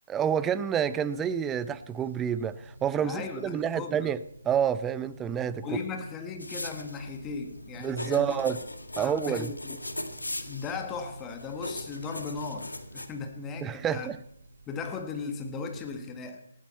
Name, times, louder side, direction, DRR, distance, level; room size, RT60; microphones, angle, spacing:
voice 1, 0.1-4.2 4.4-5.6 7.8-8.6 9.0-9.5 13.6-14.2, right 8 dB, 10° right, 0.5 m, -28 dB
sound 1, 0.8-16.1, equal, 65° right, 2.4 m, -51 dB
voice 2, 3.0-4.1 5.6-8.4 9.0-9.8 10.5-14.1 14.7-16.4, left 5 dB, 15° left, 1.7 m, -37 dB
sound 2, 6.4-13.1, left 1 dB, 85° left, 1.9 m, -39 dB
19.5 x 14.5 x 4.4 m
figure-of-eight pair, 145°, 0 cm